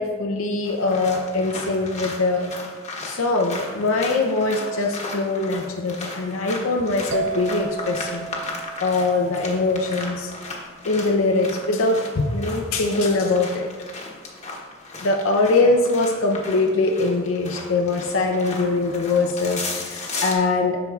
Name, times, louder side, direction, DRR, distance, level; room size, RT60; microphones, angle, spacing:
voice 1, 0.0-2.5 3.1-8.3 8.8-10.3 10.9-13.7 15.0-20.8, left 3 dB, 85° left, 2 dB, 0.6 m, -22 dB
A Walk with stop, 0.6-20.3, left 3 dB, 35° left, 1.1 m, -35 dB
sound 1, 7.1-10.7, right 7 dB, 70° right, 0.4 m, -34 dB
12.0 x 4.6 x 2.4 m, 1.5 s
head